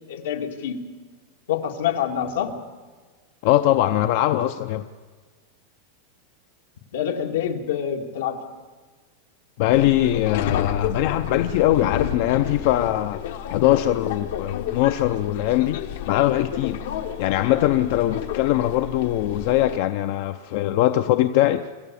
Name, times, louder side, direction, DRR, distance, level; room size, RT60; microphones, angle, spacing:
voice 1, 0.1-0.8 1.5-2.6 6.9-8.4, left 9 dB, 80° left, 2.1 m, -26 dB
voice 2, 3.4-4.9 9.6-13.2 13.5-16.8 17.2-21.7, left 13 dB, 45° left, 0.6 m, -21 dB
Subway metro underground, 9.7-19.8, left 10 dB, 65° left, 1.3 m, -31 dB
26.0 x 13.5 x 8.4 m
supercardioid pair, 170°, 0 cm